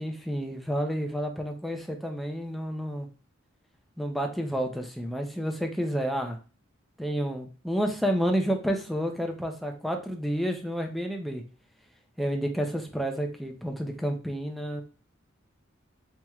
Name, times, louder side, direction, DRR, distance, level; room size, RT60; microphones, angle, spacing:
voice 1, 0.0-3.1 4.0-6.4 7.0-11.4 12.2-14.8, equal, ahead, 3 dB, 0.5 m, -30 dB
4.4 x 3.0 x 2.3 m, 0.35 s
head